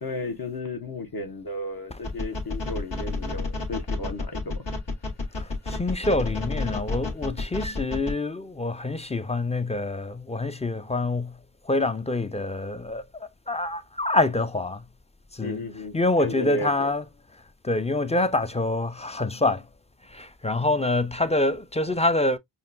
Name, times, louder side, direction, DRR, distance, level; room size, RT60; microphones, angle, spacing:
voice 1, 0.0-4.6 15.4-16.7, left 2 dB, 55° left, 0.9 m, -34 dB
sound 1, 2.0-8.1, left 2 dB, 80° left, 1.5 m, -30 dB
voice 2, 5.4-11.3 11.7-14.8 15.3-15.6 15.9-17.0 17.6-19.7 20.1-22.4, left 2 dB, 15° left, 0.3 m, -26 dB
5.3 x 2.2 x 2.4 m
wide cardioid pair, 60°, 43 cm